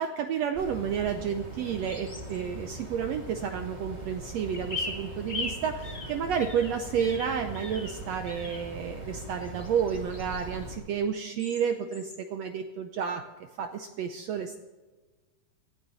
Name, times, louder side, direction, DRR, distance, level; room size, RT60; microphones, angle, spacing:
voice 1, 0.0-13.2 13.6-14.6, right 7 dB, 75° right, 7 dB, 1.6 m, -31 dB
sound 1, 0.5-10.8, right 1 dB, 15° right, 2.0 m, -41 dB
sound 2, 1.8-2.4 4.5-8.0 8.3-8.7 9.4-10.7 11.4-11.6 11.9-12.2, left 3 dB, 20° left, 1.3 m, -39 dB
18.5 x 12.0 x 4.1 m, 1.3 s
omnidirectional pair, 3.7 m